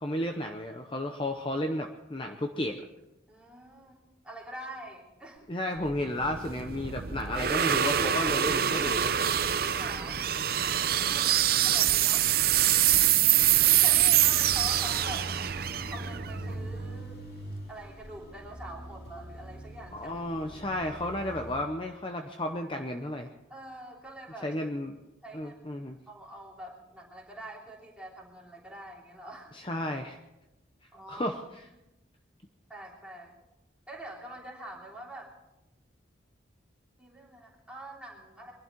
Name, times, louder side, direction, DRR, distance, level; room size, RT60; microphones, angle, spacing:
voice 1, 0.0-2.8 5.5-9.1 19.9-23.3 24.4-25.0 25.3-26.0 29.5-30.2 31.1-31.6, left 1 dB, 25° left, 4 dB, 0.8 m, -33 dB
voice 2, 3.3-5.4 9.7-10.2 11.0-12.3 12.6-12.8 13.8-15.3 15.9-17.2 17.7-20.1 23.5-24.5 25.2-29.5 30.9-31.4 32.7-33.3 33.9-35.3 37.0-38.5, right 1 dB, 5° right, -4 dB, 3.1 m, -45 dB
sound 1, 5.8-17.1, right 11 dB, 50° right, 0.6 m, -25 dB
sound 2, 13.9-21.6, right 1 dB, 50° left, 3.1 m, -42 dB
22.5 x 12.0 x 4.6 m, 0.95 s
head